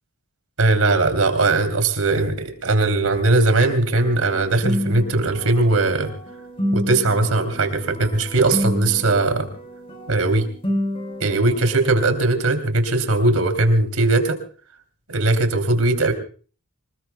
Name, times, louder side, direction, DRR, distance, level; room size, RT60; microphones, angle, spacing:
voice 1, 0.6-6.1 6.7-9.5 10.1-10.5 11.2-14.4 15.1-16.1, right 2 dB, 75° right, 7 dB, 3.2 m, -19 dB
sound 1, 3.8-12.1, equal, 25° left, 4.8 m, -30 dB
26.0 x 20.5 x 2.3 m, 0.40 s
head